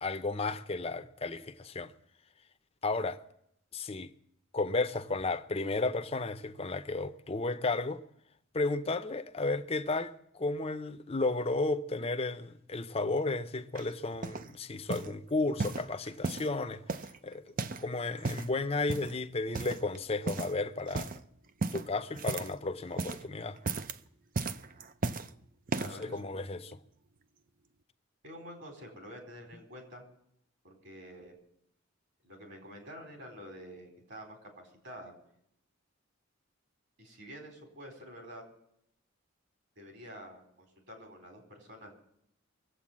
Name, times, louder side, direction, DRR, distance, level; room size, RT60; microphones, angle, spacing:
voice 1, 0.0-1.9 2.8-3.2 3.7-4.1 4.5-8.0 8.5-16.8 17.2-17.4 17.8-21.1 21.7-23.6 25.8-26.7, left 3 dB, 25° left, 0.6 m, -33 dB
sound 1, 13.8-14.5 14.9-15.2 15.6-16.5 16.9-17.9 18.1-18.5 18.9-19.2 19.5-20.0 20.3-20.6 20.9-21.2 21.6-22.6 22.9-23.3 23.6-24.0 24.4-25.3 25.7-26.1 26.7-26.8, right 3 dB, 40° right, 0.5 m, -35 dB
voice 2, 25.8-26.6 28.2-30.0 30.6-31.4 32.2-35.1 37.0-38.4 39.8-41.9, equal, 55° right, 4.4 m, -48 dB
22.0 x 8.2 x 7.4 m
head